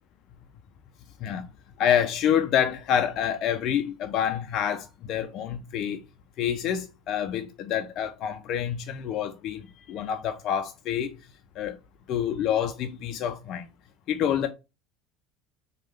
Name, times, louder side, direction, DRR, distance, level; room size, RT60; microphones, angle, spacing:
voice 1, 1.8-6.0 6.4-11.1 11.6-11.8 12.1-13.6 14.1-14.5, left 9 dB, 55° left, 0.4 m, -27 dB
3.2 x 2.2 x 3.1 m
hypercardioid pair, 80°, 0 cm